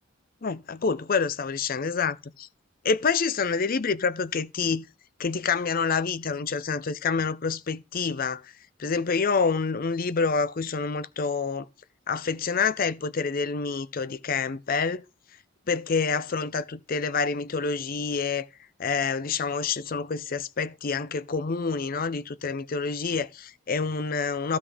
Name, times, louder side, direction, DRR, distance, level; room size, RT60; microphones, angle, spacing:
voice 1, 0.4-2.5 2.8-4.9 5.2-8.5 8.8-11.7 12.1-15.0 15.7-18.5 18.8-24.6, left 5 dB, 45° left, 0.5 m, -27 dB
15.0 x 5.2 x 3.5 m
head